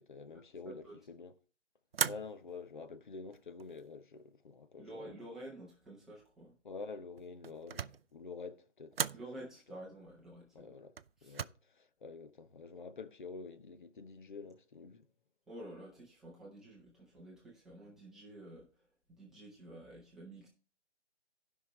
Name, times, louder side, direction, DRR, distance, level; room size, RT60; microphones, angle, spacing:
voice 1, 0.0-1.3 2.0-5.1 6.6-9.0 10.5-10.9 11.2-15.1, left 4 dB, 45° left, 0.9 m, -48 dB
voice 2, 0.7-1.0 4.8-6.5 9.1-10.7 11.2-11.4 15.5-18.7 19.1-20.5, right 1 dB, ahead, 0.9 m, -50 dB
sound 1, 1.9-2.6 3.3-3.9 7.2-8.1 8.9-9.3 11.0-11.5, right 7 dB, 55° right, 0.4 m, -37 dB
15.0 x 5.6 x 3.2 m
figure-of-eight pair, 145°, 35 cm